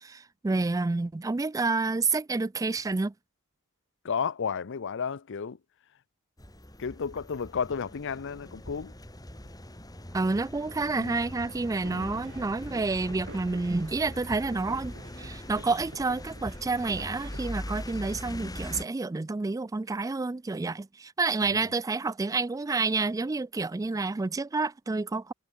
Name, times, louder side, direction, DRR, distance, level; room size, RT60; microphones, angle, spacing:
voice 1, 0.0-3.1 10.1-25.3, right 3 dB, 15° right, 0.3 m, -29 dB
voice 2, 4.0-5.6 6.8-8.9 10.9-11.2 11.9-12.3 21.4-21.6, left 6 dB, 60° left, 0.6 m, -33 dB
sound 1, 6.4-18.8, left 1 dB, 20° left, 4.1 m, -41 dB
sound 2, 11.8-17.5, right 2 dB, 55° right, 2.6 m, -49 dB
head